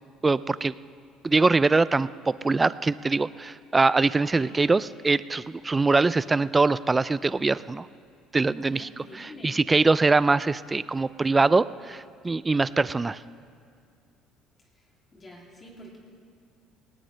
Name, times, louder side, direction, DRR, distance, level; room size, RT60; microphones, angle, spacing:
voice 1, 0.2-0.7 1.2-7.9 8.3-8.9 9.2-13.2, right 3 dB, 20° right, 17 dB, 0.3 m, -23 dB
voice 2, 8.7-9.5 14.7-14.8 15.1-16.0, left 1 dB, 30° left, -2 dB, 2.8 m, -46 dB
18.5 x 18.0 x 3.3 m, 2.3 s
cardioid pair, 115°, 0 cm